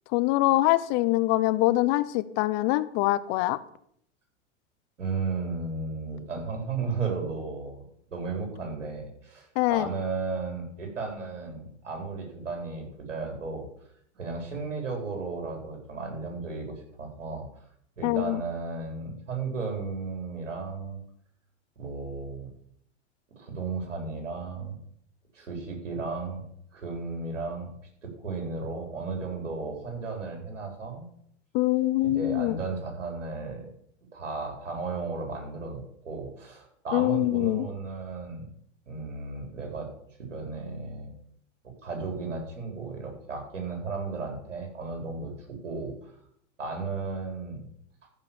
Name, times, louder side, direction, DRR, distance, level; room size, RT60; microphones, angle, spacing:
voice 1, 0.1-3.6 9.5-9.9 18.0-18.4 31.5-32.6 36.9-37.7, left 17 dB, 45° left, 15 dB, 0.9 m, -24 dB
voice 2, 5.0-13.7 14.1-17.5 18.0-21.0 21.8-22.5 23.3-24.8 25.3-26.4 26.7-27.7 28.0-31.1 32.0-33.7 34.1-38.5 38.9-39.9 40.2-41.1 41.6-46.1 46.6-47.6, right 4 dB, 85° right, 2 dB, 4.2 m, -34 dB
14.0 x 5.8 x 7.1 m, 0.69 s
hypercardioid pair, 105°, 36 cm